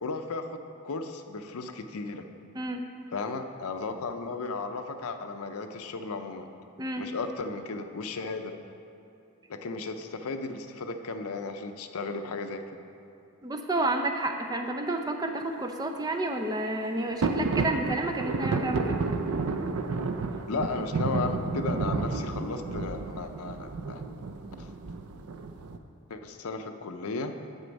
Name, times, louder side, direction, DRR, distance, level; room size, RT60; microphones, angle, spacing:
voice 1, 0.0-2.2 3.1-6.5 7.0-8.5 9.5-12.6 20.5-24.0 24.6-24.7 26.1-27.3, left 3 dB, 80° left, 6 dB, 0.6 m, -35 dB
voice 2, 13.4-19.0, right 2 dB, 15° right, 5 dB, 0.4 m, -30 dB
sound 1, 17.2-25.8, right 3 dB, 80° right, 0.5 m, -31 dB
8.0 x 6.8 x 5.2 m, 2.6 s
head